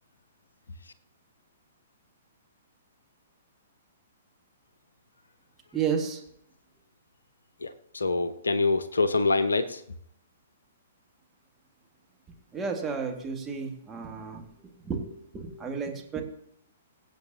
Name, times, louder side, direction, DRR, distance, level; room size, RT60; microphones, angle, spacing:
voice 1, 5.7-6.2 12.5-16.2, right 6 dB, 15° right, 1 dB, 1.9 m, -32 dB
voice 2, 7.6-9.8, left 3 dB, 70° left, 13 dB, 0.8 m, -25 dB
23.0 x 8.0 x 2.8 m, 0.72 s
figure-of-eight pair, 115°, 0 cm